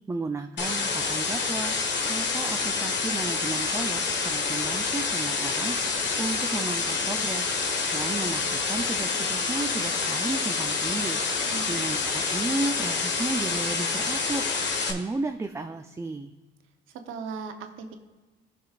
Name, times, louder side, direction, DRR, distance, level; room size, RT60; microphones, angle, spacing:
voice 1, 0.1-1.8 2.0-5.8 6.2-7.5 7.9-11.2 11.7-14.5 14.9-16.3, right 3 dB, 15° right, 6 dB, 0.4 m, -33 dB
sound 1, 0.6-14.9, left 4 dB, 65° left, 1.3 m, -27 dB
voice 2, 11.4-11.9 17.1-18.0, right 5 dB, 90° right, 6 dB, 0.9 m, -38 dB
15.5 x 6.0 x 2.4 m, 1.2 s
cardioid pair, 90°, 20 cm